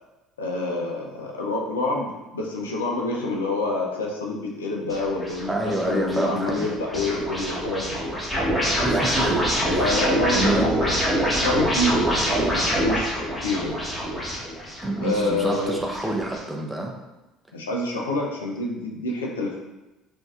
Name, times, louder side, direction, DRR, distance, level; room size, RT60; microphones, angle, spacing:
voice 1, 0.4-8.0 9.7-11.0 11.4-13.8 15.0-15.8 17.5-19.6, left 2 dB, 85° left, -1 dB, 0.4 m, -27 dB
sound 1, 4.9-16.4, equal, 5° left, 1.1 m, -26 dB
voice 2, 5.5-6.7 8.8-9.4 9.7-9.9 10.3-10.7 14.8-17.0, right 2 dB, 10° right, 1 dB, 0.6 m, -27 dB
3.7 x 2.5 x 2.4 m, 1.1 s
hypercardioid pair, 60°, 0 cm